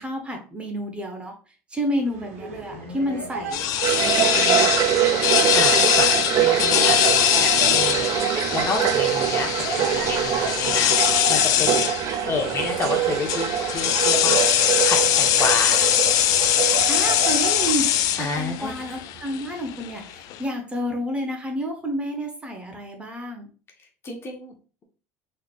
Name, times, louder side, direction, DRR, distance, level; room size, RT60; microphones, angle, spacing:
voice 1, 0.0-1.3 1.7-4.7 16.9-23.5, equal, 15° right, 3 dB, 1.0 m, -30 dB
sound 1, 1.9-20.4, right 4 dB, 85° right, 1.0 m, -40 dB
voice 2, 2.7-3.2 5.5-11.9 12.2-14.4 14.8-15.8 18.2-18.7 24.0-24.5, left 3 dB, 35° left, 2 dB, 1.1 m, -30 dB
sound 2, 3.5-20.4, left 12 dB, 60° left, 0.3 m, -22 dB
sound 3, 3.8-17.7, right 11 dB, 50° right, 0.3 m, -24 dB
3.9 x 3.3 x 2.4 m, 0.37 s
supercardioid pair, 100°, 7 cm